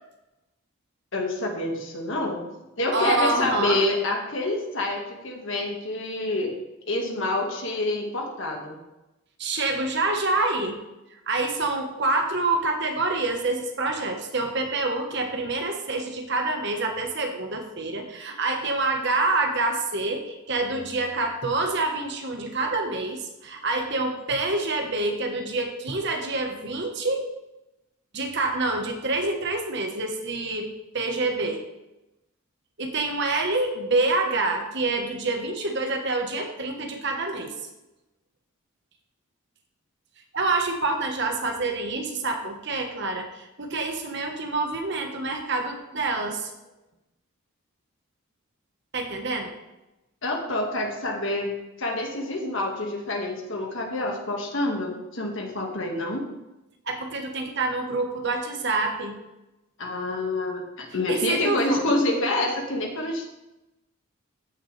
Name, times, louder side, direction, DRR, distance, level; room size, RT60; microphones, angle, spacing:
voice 1, 1.1-2.4 2.8-5.0 5.2-6.5 6.8-8.8 50.2-56.3 59.8-63.3, left 2 dB, 55° left, 1 dB, 1.7 m, -27 dB
voice 2, 2.9-3.8 9.4-10.8 11.3-27.3 28.1-30.7 30.9-31.6 32.8-37.5 40.3-46.5 48.9-49.5 56.9-59.2 61.1-61.8, right 2 dB, 50° right, 3 dB, 1.2 m, -27 dB
14.0 x 6.7 x 3.3 m, 0.97 s
head